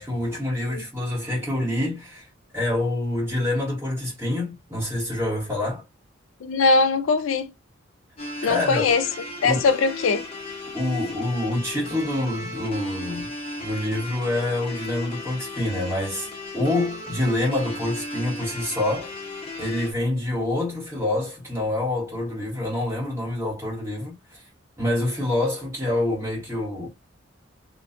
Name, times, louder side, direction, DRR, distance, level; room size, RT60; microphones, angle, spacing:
voice 1, 0.0-2.3 2.5-5.8 8.4-8.8 9.4-9.6 10.7-13.3 13.6-16.3 16.5-19.1 19.6-24.4 24.8-26.9, left 1 dB, 15° right, 1.4 m, -26 dB
voice 2, 6.4-7.5 8.4-9.0 9.4-10.2, left 4 dB, 85° left, 0.4 m, -21 dB
sound 1, 8.2-19.9, left 2 dB, 30° left, 0.6 m, -36 dB
2.5 x 2.2 x 2.4 m
head